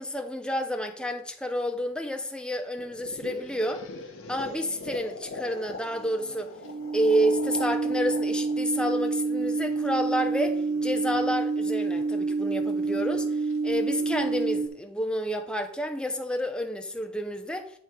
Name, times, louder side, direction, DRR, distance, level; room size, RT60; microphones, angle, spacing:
voice 1, 0.0-3.8 4.3-6.5 6.9-13.3 13.6-17.7, equal, 5° left, 0.6 m, -29 dB
sound 1, 2.8-9.7, left 3 dB, 65° left, 0.9 m, -41 dB
sound 2, 5.4-14.7, equal, 85° left, 1.3 m, -50 dB
sound 3, 6.6-14.7, right 4 dB, 80° right, 0.4 m, -28 dB
9.6 x 3.7 x 4.4 m
head